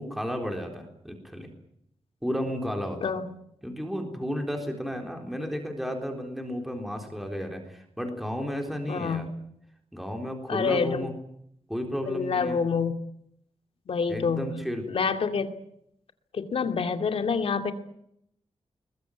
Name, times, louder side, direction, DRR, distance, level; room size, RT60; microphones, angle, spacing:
voice 1, 0.0-1.5 2.2-3.1 3.6-9.3 9.9-11.1 11.7-12.6 14.1-14.9, equal, ahead, 3 dB, 3.8 m, -33 dB
voice 2, 8.9-9.3 10.5-11.1 12.1-13.0 13.9-14.5 14.9-15.5 16.3-17.7, left 5 dB, 65° left, 7 dB, 2.3 m, -27 dB
22.0 x 21.5 x 9.2 m, 0.74 s
wide cardioid pair, 180°, 11 cm